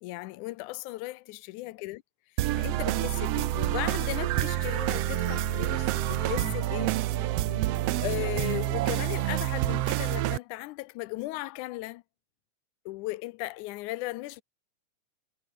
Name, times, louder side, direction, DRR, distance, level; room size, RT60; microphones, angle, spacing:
voice 1, 0.0-2.0 2.6-6.9 8.0-12.0 12.9-14.4, left 19 dB, 85° left, 2.1 m, -36 dB
sound 1, 2.4-8.7, left 11 dB, 60° left, 2.2 m, -45 dB
sound 2, 2.4-10.4, right 16 dB, 80° right, 1.4 m, -28 dB
omnidirectional pair, 3.5 m